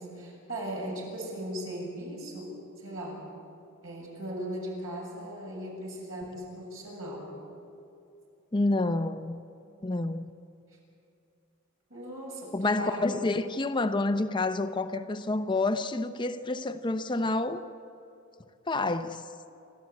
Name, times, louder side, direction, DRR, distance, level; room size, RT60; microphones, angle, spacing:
voice 1, 0.0-3.2 3.8-7.3 11.9-13.1, equal, 75° right, 7.4 m, -38 dB
voice 2, 8.5-9.4 9.8-10.3 12.5-17.6 18.7-19.3, left 2 dB, 25° left, 0.7 m, -28 dB
29.5 x 13.0 x 8.5 m
head